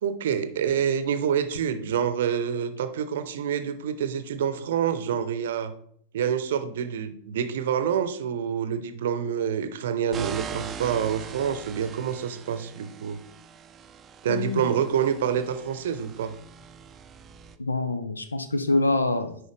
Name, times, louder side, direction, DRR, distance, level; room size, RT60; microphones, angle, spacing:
voice 1, 0.0-5.7 6.1-13.2 14.2-16.3, right 8 dB, 60° right, 12 dB, 0.7 m, -27 dB
sound 1, 10.1-17.6, right 6 dB, 25° right, 0.5 m, -42 dB
voice 2, 14.3-14.6 17.6-19.4, left 2 dB, 80° left, 10 dB, 0.6 m, -25 dB
9.4 x 5.4 x 3.3 m, 0.64 s
figure-of-eight pair, 90°, 0 cm